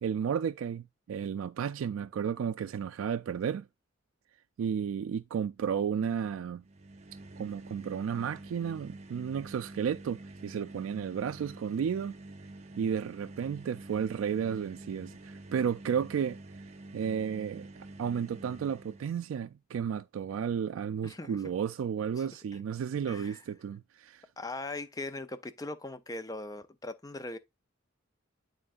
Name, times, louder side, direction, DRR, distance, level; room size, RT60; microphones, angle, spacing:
voice 1, 0.0-3.7 4.6-6.6 7.4-12.1 12.7-16.4 16.9-17.7 18.0-24.2, right 7 dB, 80° right, 0.3 m, -33 dB
sound 1, 6.6-19.2, right 2 dB, 35° right, 0.7 m, -48 dB
voice 2, 21.0-21.4 23.1-23.4 24.4-27.4, left 2 dB, 20° left, 0.5 m, -40 dB
11.0 x 3.8 x 2.4 m
head